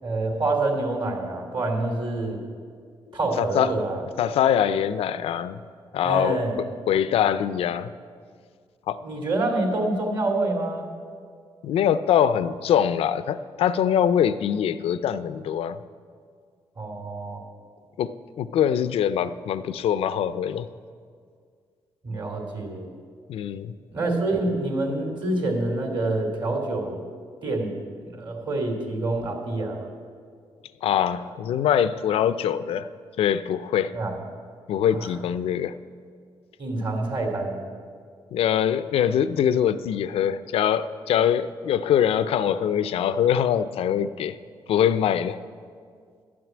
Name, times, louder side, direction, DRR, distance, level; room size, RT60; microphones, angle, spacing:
voice 1, 0.0-2.4 3.1-4.0 6.0-6.6 9.0-10.9 16.8-17.4 22.0-22.9 23.9-27.0 27.4-27.8 28.1-29.9 33.9-34.1 36.6-37.5, right 2 dB, 50° right, 1 dB, 2.8 m, -27 dB
voice 2, 3.4-3.8 4.2-5.6 5.9-7.9 8.9-9.0 11.6-15.8 18.0-20.7 23.3-23.7 30.8-32.9 33.2-34.0 34.7-35.8 38.3-44.4 44.7-45.4, left 9 dB, 80° left, 14 dB, 0.4 m, -23 dB
12.0 x 6.1 x 9.4 m, 2.1 s
cardioid pair, 90°, 10 cm